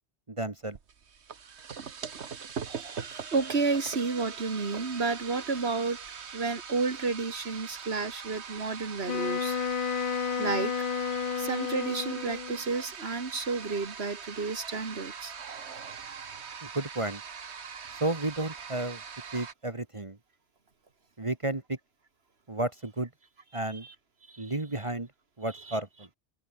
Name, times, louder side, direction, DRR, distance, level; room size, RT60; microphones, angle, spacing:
voice 1, 0.3-0.8 16.7-17.2 18.0-19.0 19.3-20.2 21.2-21.8 22.5-23.1 23.5-23.8 24.4-25.1 25.4-26.1, right 2 dB, 30° right, 1.6 m, -32 dB
sound 1, 0.7-19.5, right 6 dB, 85° right, 1.6 m, -42 dB
voice 2, 2.7-6.0 6.3-9.6 10.4-10.7 11.4-15.3 23.7-23.9 24.3-24.6 25.5-25.8, right 4 dB, 70° right, 2.4 m, -31 dB
Wind instrument woodwind instrument, 9.1-12.6, left 7 dB, 55° left, 1.1 m, -31 dB
omnidirectional pair, 1.1 m